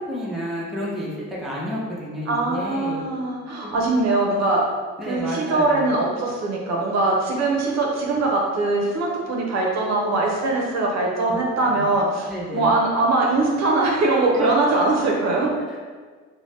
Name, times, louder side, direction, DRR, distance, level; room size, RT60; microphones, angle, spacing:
voice 1, 0.1-3.0 3.6-3.8 5.0-5.9 11.3-11.9 12.2-12.7 14.4-14.9 15.7-15.8, equal, ahead, -6 dB, 0.7 m, -31 dB
voice 2, 2.3-4.6 5.1-15.5, right 2 dB, 60° right, -1 dB, 0.6 m, -22 dB
2.6 x 2.1 x 3.3 m, 1.5 s
cardioid pair, 90°, 30 cm